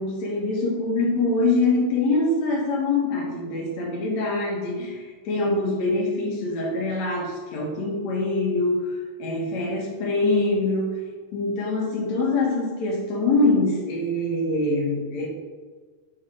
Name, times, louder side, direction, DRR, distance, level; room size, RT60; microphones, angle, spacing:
voice 1, 0.0-11.0 11.3-15.3, left 2 dB, 65° left, -2 dB, 1.7 m, -24 dB
6.9 x 5.0 x 4.9 m, 1.5 s
omnidirectional pair, 5.4 m